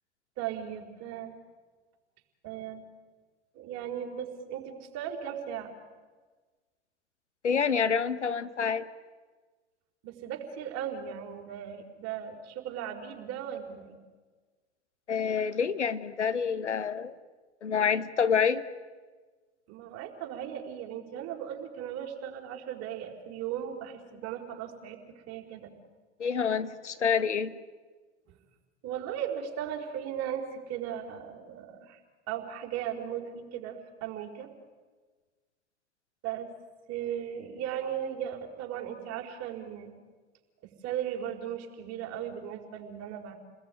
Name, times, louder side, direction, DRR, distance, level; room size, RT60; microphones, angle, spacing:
voice 1, 0.4-1.4 2.4-2.8 3.5-5.7 10.0-14.0 19.7-25.7 28.3-28.4 28.8-32.0 32.3-34.5 36.2-36.5 36.9-39.9 40.6-43.4, right 9 dB, 45° right, 3 dB, 4.6 m, -37 dB
voice 2, 7.4-8.9 15.1-17.1 17.6-18.6 26.2-27.5, left 6 dB, 85° left, 14 dB, 1.3 m, -27 dB
30.0 x 20.5 x 9.3 m, 1.4 s
hypercardioid pair, 85°, 34 cm